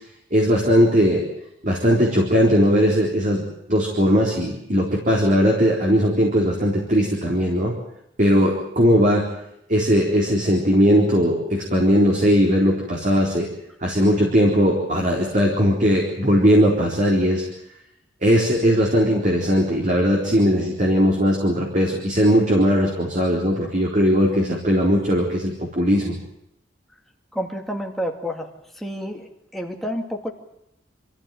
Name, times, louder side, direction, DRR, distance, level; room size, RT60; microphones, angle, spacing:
voice 1, 0.3-1.2 1.6-3.4 3.7-7.7 8.2-9.3 9.7-13.5 13.8-17.4 18.2-26.1, equal, 40° right, -2 dB, 4.0 m, -19 dB
voice 2, 27.3-28.5 28.8-29.3 29.5-30.3, equal, ahead, 2 dB, 2.6 m, -29 dB
26.0 x 15.0 x 9.1 m, 0.82 s
head